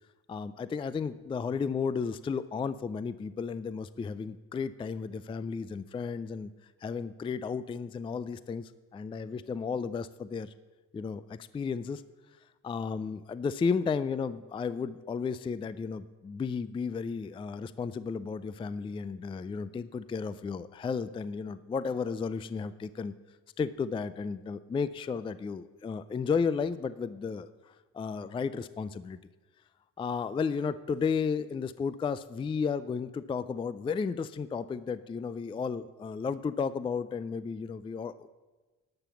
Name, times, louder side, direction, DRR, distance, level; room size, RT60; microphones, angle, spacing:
voice 1, 0.3-6.5 6.8-10.5 10.9-12.0 12.6-23.1 23.6-29.2 30.0-38.3, left 5 dB, 20° left, 16 dB, 0.3 m, -33 dB
12.0 x 5.8 x 7.0 m, 1.3 s
cardioid pair, 90°, 30 cm